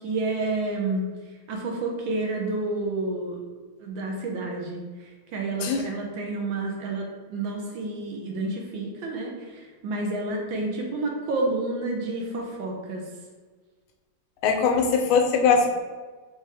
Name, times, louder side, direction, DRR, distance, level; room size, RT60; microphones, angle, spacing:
voice 1, 0.0-1.1 1.5-3.4 3.8-4.8 5.3-13.0, right 2 dB, 70° right, 0 dB, 1.4 m, -29 dB
voice 2, 14.4-15.8, left 5 dB, 85° left, 2 dB, 1.5 m, -21 dB
4.6 x 3.1 x 3.4 m, 1.4 s
omnidirectional pair, 2.3 m